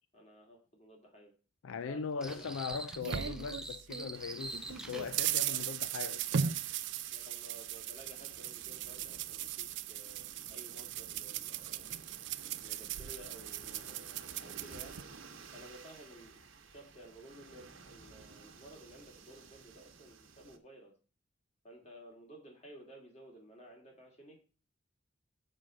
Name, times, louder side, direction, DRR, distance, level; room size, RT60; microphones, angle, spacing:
voice 1, 0.1-1.3 1.8-2.4 5.4-5.6 7.1-11.9 12.6-15.1 15.5-20.9 21.6-24.4, right 1 dB, 35° left, 2.5 m, -55 dB
voice 2, 1.6-6.6, left 5 dB, 90° left, 0.4 m, -40 dB
sound 1, 2.2-5.1, right 2 dB, 5° right, 0.5 m, -44 dB
sound 2, 2.3-4.1 4.5-15.0, right 9 dB, 60° right, 0.4 m, -38 dB
sound 3, 4.1-20.6, right 5 dB, 85° right, 1.1 m, -54 dB
6.3 x 4.4 x 6.4 m
head